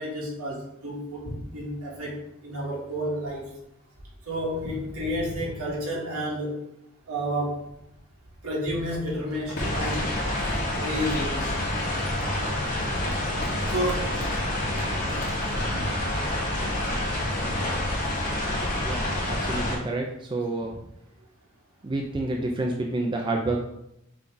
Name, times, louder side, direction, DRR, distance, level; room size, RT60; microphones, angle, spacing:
voice 1, 0.0-3.5 4.3-6.6 7.1-7.6 8.4-10.1 10.8-11.4 12.2-12.3 13.7-14.1 15.6-15.8, equal, 85° right, -4 dB, 1.5 m, -30 dB
Crumpling crinkling, 8.9-15.7, equal, 60° left, 1.4 m, -39 dB
sound 1, 9.6-19.8, left 1 dB, 40° left, 1.6 m, -28 dB
voice 2, 18.6-19.0 19.3-20.7 21.8-23.6, right 2 dB, 20° right, 0 dB, 0.3 m, -29 dB
5.9 x 2.3 x 3.9 m, 0.80 s
head